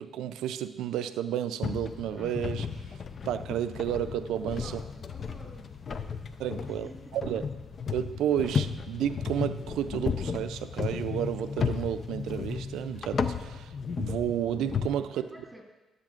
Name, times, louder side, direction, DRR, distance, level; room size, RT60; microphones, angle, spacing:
voice 1, 0.0-2.7 3.3-4.7 6.4-6.9 7.1-7.5 7.9-15.3, right 10 dB, 85° right, 10 dB, 0.4 m, -31 dB
sound 1, 1.6-14.9, left 6 dB, 45° left, 0.5 m, -34 dB
voice 2, 4.6-5.8 6.7-7.2 15.1-15.6, equal, ahead, -1 dB, 1.9 m, -50 dB
12.0 x 8.0 x 2.4 m, 1.1 s
cardioid pair, 90°, 0 cm